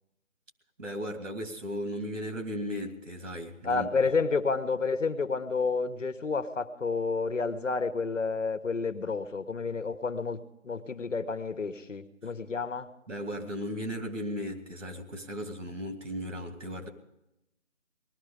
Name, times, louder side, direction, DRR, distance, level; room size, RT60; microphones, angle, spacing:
voice 1, 0.8-3.9 13.1-16.9, equal, 70° right, 5 dB, 2.7 m, -36 dB
voice 2, 3.6-12.9, left 4 dB, 70° left, 10 dB, 1.4 m, -30 dB
19.0 x 13.5 x 5.1 m, 0.88 s
figure-of-eight pair, 165°, 39 cm